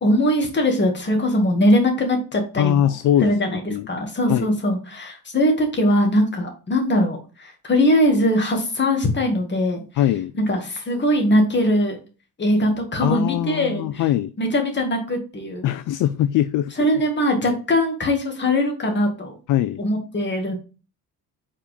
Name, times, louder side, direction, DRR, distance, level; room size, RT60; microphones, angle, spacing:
voice 1, 0.0-2.9 3.2-9.8 10.3-12.0 12.4-14.1 14.4-15.7 16.8-19.4 19.8-20.6, left 1 dB, 30° left, 2.0 m, -21 dB
voice 2, 2.6-3.3 3.7-3.9 4.3-4.5 10.0-10.3 13.0-14.3 15.6-16.7 19.5-19.8, left 11 dB, 60° left, 0.4 m, -21 dB
5.1 x 4.2 x 5.1 m
cardioid pair, 110°, 37 cm